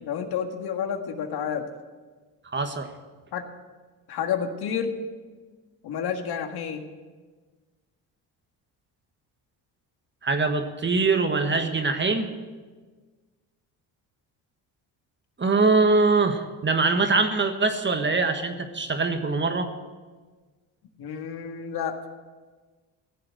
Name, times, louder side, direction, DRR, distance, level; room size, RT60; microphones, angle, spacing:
voice 1, 0.0-1.7 3.3-3.5 4.1-4.9 5.8-6.8 21.0-22.1, left 7 dB, 65° left, 5 dB, 1.7 m, -30 dB
voice 2, 2.5-2.9 10.2-12.3 15.4-19.7, right 3 dB, 25° right, 7 dB, 1.4 m, -23 dB
15.5 x 7.5 x 9.1 m, 1.4 s
supercardioid pair, 85°, 41 cm